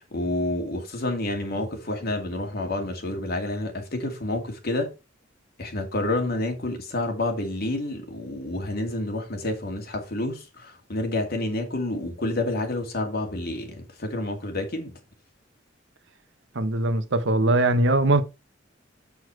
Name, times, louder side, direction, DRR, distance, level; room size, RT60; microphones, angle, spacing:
voice 1, 0.1-4.9 5.6-14.9, left 2 dB, 55° left, 2.3 m, -29 dB
voice 2, 16.5-18.2, right 2 dB, 70° right, 1.0 m, -21 dB
7.1 x 6.2 x 4.6 m
head